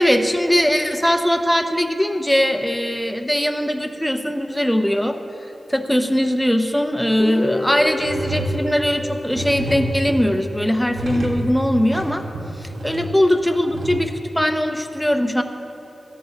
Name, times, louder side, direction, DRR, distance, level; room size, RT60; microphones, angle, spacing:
voice 1, 0.0-5.2 5.7-12.2 12.6-15.4, equal, 5° left, 6 dB, 0.7 m, -20 dB
Guitar, 7.2-11.0, left 2 dB, 40° left, 0.9 m, -29 dB
sound 1, 7.6-7.7 8.0-13.9, right 1 dB, 60° right, 1.5 m, -29 dB
17.0 x 13.5 x 2.9 m, 3.0 s
wide cardioid pair, 85°, 0 cm